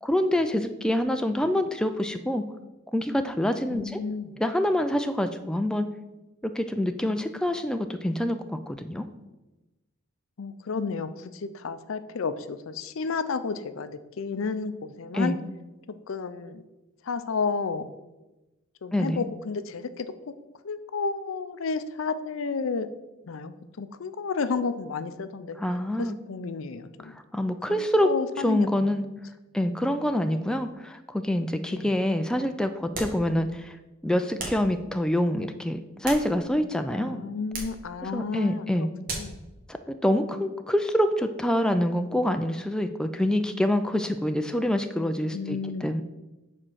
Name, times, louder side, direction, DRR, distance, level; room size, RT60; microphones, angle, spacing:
voice 1, 0.0-2.4 2.9-4.0 4.4-5.9 6.4-9.1 15.1-15.4 18.9-19.2 25.6-26.1 27.0-28.1 28.4-29.0 29.5-33.8 34.0-37.2 38.0-38.9 39.7-46.0, left 1 dB, 5° left, 7 dB, 0.3 m, -26 dB
voice 2, 3.7-4.3 10.4-15.4 16.1-16.6 17.1-17.9 18.8-20.3 20.6-22.9 23.2-25.6 26.0-27.2 27.8-28.9 31.7-31.9 36.9-38.9 39.1-39.4 45.3-45.9, left 4 dB, 65° left, 12 dB, 0.5 m, -32 dB
sound 1, 32.9-33.3 34.4-34.7 35.8-36.7 37.5-37.8 39.1-39.4, right 2 dB, 40° right, 1.9 m, -36 dB
7.4 x 4.4 x 6.3 m, 1.0 s
head